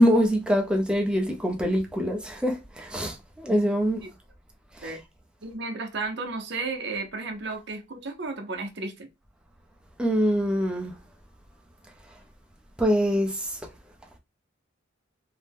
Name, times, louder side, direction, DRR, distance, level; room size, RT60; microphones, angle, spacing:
voice 1, 0.0-4.0 4.8-4.9 10.0-10.9 12.8-13.6, equal, 5° right, 0.5 m, -24 dB
voice 2, 5.4-9.1, right 3 dB, 60° right, 0.7 m, -33 dB
2.7 x 2.1 x 3.4 m
head